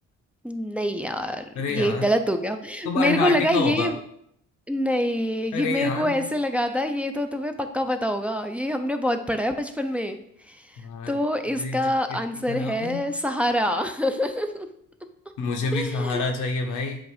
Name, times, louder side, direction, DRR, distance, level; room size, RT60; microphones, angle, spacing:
voice 1, 0.4-4.0 4.7-10.2 10.5-10.6 11.1-14.7 15.7-16.3, equal, 5° right, 5 dB, 0.5 m, -25 dB
voice 2, 1.5-2.0 2.8-3.9 5.5-6.2 10.8-11.1 11.6-12.2 12.5-13.0 15.4-17.0, left 4 dB, 90° left, 3 dB, 1.0 m, -28 dB
7.7 x 2.6 x 4.9 m, 0.69 s
cardioid pair, 90°, 30 cm